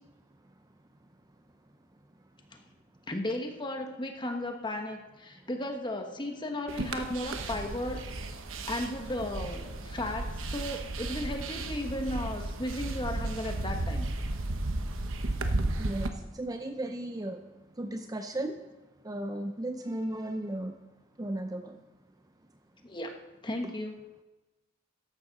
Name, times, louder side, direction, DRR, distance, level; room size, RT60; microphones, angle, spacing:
voice 1, 3.1-8.0 8.7-14.1 22.8-23.1 23.4-23.9, left 1 dB, 25° left, 4 dB, 1.3 m, -35 dB
sound 1, 6.7-16.1, right 2 dB, 80° right, 1.0 m, -34 dB
voice 2, 15.8-16.1 16.4-17.4 17.8-18.6 19.0-20.7 21.2-21.8 23.6-23.7, right 1 dB, 20° right, 6 dB, 0.5 m, -35 dB
14.0 x 11.0 x 4.1 m, 1.1 s
head